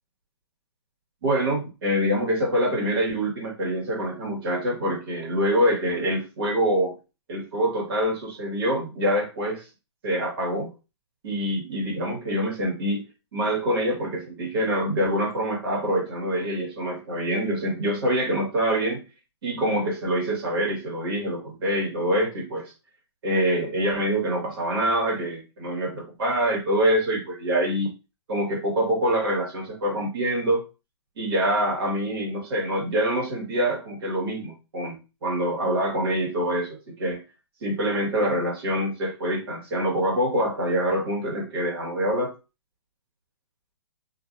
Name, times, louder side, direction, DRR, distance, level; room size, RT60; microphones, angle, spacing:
voice 1, 1.2-7.0 7.3-9.7 10.0-10.7 11.2-13.1 13.3-19.0 19.4-22.7 23.2-27.9 28.3-30.6 31.2-37.2 37.6-42.3, equal, 55° right, -2 dB, 1.7 m, -25 dB
2.8 x 2.7 x 2.5 m, 0.29 s
hypercardioid pair, 150°, 15 cm